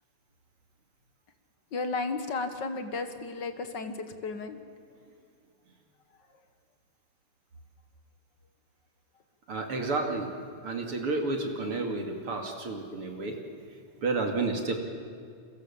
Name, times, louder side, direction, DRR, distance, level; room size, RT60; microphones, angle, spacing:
voice 1, 1.7-4.6, left 3 dB, 45° left, 8 dB, 1.5 m, -33 dB
voice 2, 9.5-10.3 10.6-13.4 14.0-14.8, right 3 dB, 45° right, 4 dB, 3.0 m, -31 dB
30.0 x 22.5 x 7.2 m, 2.3 s
omnidirectional pair, 3.8 m